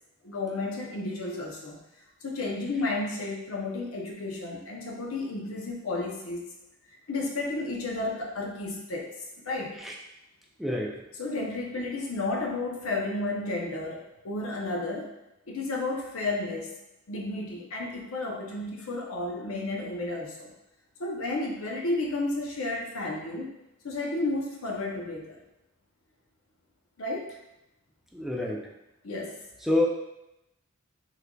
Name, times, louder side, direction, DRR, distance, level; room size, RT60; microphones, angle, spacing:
voice 1, 0.2-1.8 2.2-6.5 7.1-9.1 9.4-9.8 11.1-15.1 15.5-16.7 17.1-20.5 21.0-23.5 23.8-25.4 27.0-27.3 29.0-29.4, left 2 dB, 80° left, 0 dB, 0.7 m, -32 dB
voice 2, 10.6-11.0 28.1-28.7 29.6-29.9, left 2 dB, ahead, -2 dB, 0.3 m, -27 dB
3.7 x 3.2 x 2.2 m, 0.90 s
head